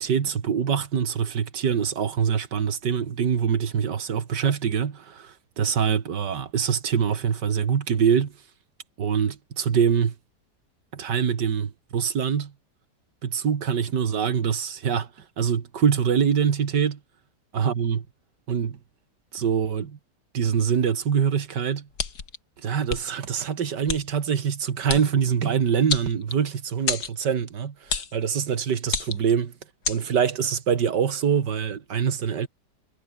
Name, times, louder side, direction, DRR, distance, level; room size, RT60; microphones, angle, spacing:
voice 1, 0.0-8.3 9.0-10.1 10.9-12.5 13.2-15.1 15.4-17.0 17.5-18.1 18.5-18.8 19.3-20.0 20.3-21.9 22.6-29.5 29.9-32.5, right 7 dB, 85° right, 2.3 m, -24 dB
sound 1, 22.0-22.4 22.9-23.0 23.9-24.0 24.9-25.1 25.9-26.5 26.9-27.1 27.9-28.2 28.9-29.3 29.8-30.0, left 6 dB, 70° left, 2.6 m, -28 dB
omnidirectional pair, 1.8 m